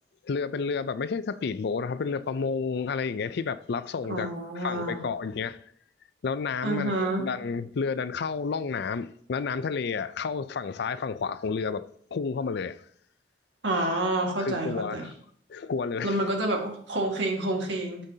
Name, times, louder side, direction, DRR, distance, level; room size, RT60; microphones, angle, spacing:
voice 1, 0.2-5.6 6.2-12.8 14.4-15.1 15.5-16.2, left 5 dB, 60° left, 0.4 m, -31 dB
voice 2, 4.1-5.0 6.6-7.3 13.6-15.1 16.0-18.0, right 1 dB, 70° right, 1.8 m, -28 dB
12.0 x 5.1 x 2.8 m
head